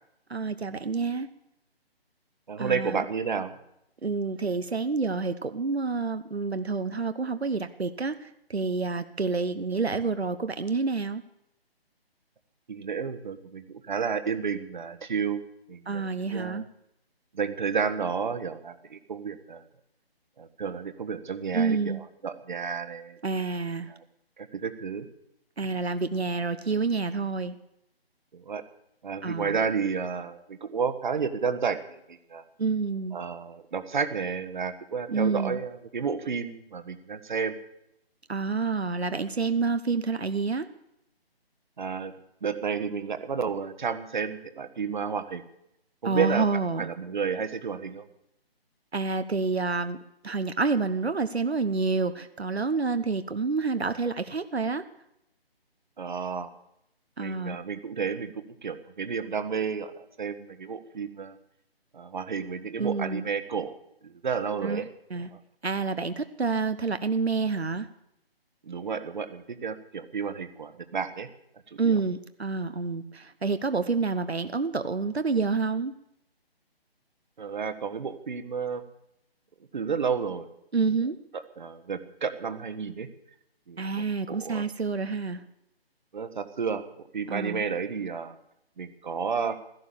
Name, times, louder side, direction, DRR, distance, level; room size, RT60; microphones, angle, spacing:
voice 1, 0.3-1.3 2.6-3.0 4.0-11.2 15.9-16.6 21.5-22.0 23.2-23.9 25.6-27.6 29.2-29.6 32.6-33.2 35.1-35.6 38.3-40.7 46.0-46.9 48.9-54.8 57.2-57.6 62.8-63.2 64.6-65.3 65.6-67.9 71.8-75.9 80.7-81.2 83.8-85.4 87.3-87.6, right 4 dB, 80° right, 9 dB, 1.1 m, -28 dB
voice 2, 2.5-3.5 12.7-15.4 15.7-16.6 17.3-19.6 20.4-23.2 23.9-24.0 24.4-25.1 28.3-28.6 29.0-32.4 33.1-37.6 41.8-42.1 42.4-45.4 46.0-46.5 46.8-48.0 56.0-56.5 57.2-61.4 61.9-63.7 64.0-64.9 65.3-65.4 68.6-71.3 71.8-72.0 77.4-78.8 79.7-80.5 81.6-83.1 83.7-84.7 86.1-88.4 88.8-89.6, right 6 dB, 50° right, 10 dB, 1.3 m, -31 dB
16.0 x 12.5 x 7.0 m, 0.81 s
figure-of-eight pair, 150°, 31 cm